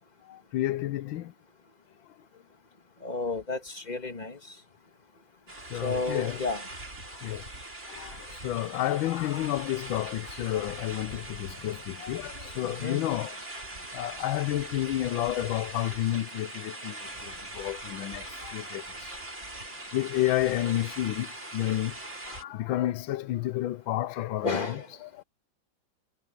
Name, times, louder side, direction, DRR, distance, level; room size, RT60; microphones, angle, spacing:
voice 1, 0.3-1.3 5.7-6.4 7.2-7.4 7.9-13.4 13.9-19.1 19.9-21.9 22.3-25.2, left 14 dB, 85° left, 1.5 m, -31 dB
voice 2, 3.0-4.4 5.8-6.6 12.6-13.0 24.4-24.9, left 3 dB, 20° left, 1.9 m, -32 dB
sound 1, 5.5-22.4, right 2 dB, 35° right, 5.2 m, -42 dB
omnidirectional pair, 2.1 m